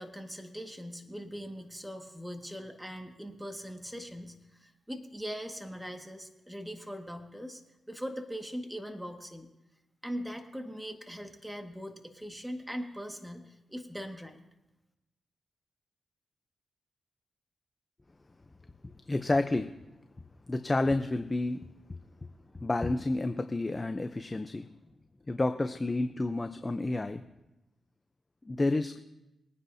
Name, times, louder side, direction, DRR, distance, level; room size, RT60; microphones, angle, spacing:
voice 1, 0.0-7.6 7.9-9.5 10.0-14.4, equal, 5° right, 4 dB, 1.9 m, -41 dB
voice 2, 19.1-19.7 20.5-21.7 22.5-24.7 25.3-27.2 28.4-29.0, left 2 dB, 30° left, 9 dB, 0.7 m, -30 dB
22.5 x 9.8 x 2.8 m, 0.96 s
supercardioid pair, 40°, 0 cm